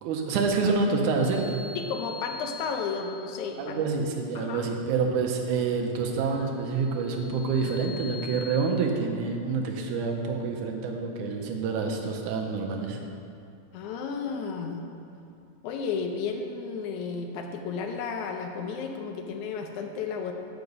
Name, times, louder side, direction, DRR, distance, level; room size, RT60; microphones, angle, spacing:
voice 1, 0.0-1.6 3.6-13.0, right 4 dB, 85° right, 2 dB, 2.3 m, -27 dB
sound 1, 1.0-3.6 6.5-8.6, left 5 dB, 25° left, 0.5 m, -43 dB
voice 2, 1.8-3.9 4.4-4.7 13.7-14.8 15.6-20.3, left 5 dB, 85° left, 4 dB, 2.1 m, -33 dB
8.0 x 5.9 x 5.2 m, 2.5 s
omnidirectional pair, 3.4 m